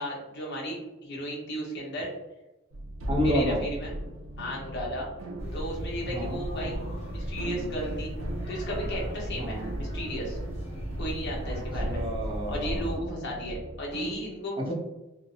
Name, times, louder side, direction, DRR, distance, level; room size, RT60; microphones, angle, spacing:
voice 1, 0.0-2.1 3.2-3.9 4.4-5.1 5.5-6.8 7.0-8.1 8.5-10.4 11.0-12.0 12.5-14.6, equal, 60° left, -3 dB, 0.9 m, -35 dB
sound 1, 2.7-14.2, right 1 dB, 75° right, 0.4 m, -38 dB
voice 2, 3.1-3.6 6.1-6.4 9.4-9.6 11.5-11.6 11.9-13.1 14.6-14.7, equal, 25° right, -1 dB, 0.6 m, -29 dB
sound 2, 5.4-13.0, equal, 30° left, 1.4 m, -35 dB
2.7 x 2.1 x 2.5 m, 1.0 s
head